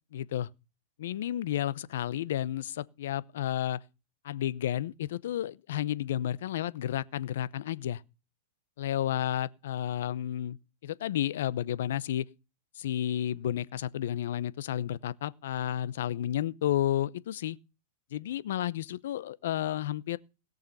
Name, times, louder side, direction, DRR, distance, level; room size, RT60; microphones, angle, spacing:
voice 1, 0.1-0.5 1.0-3.8 4.2-8.0 8.8-10.6 10.8-12.3 12.8-17.6 18.1-20.2, left 11 dB, 70° left, 0.7 m, -31 dB
17.5 x 6.7 x 5.4 m
supercardioid pair, 155°, 0 cm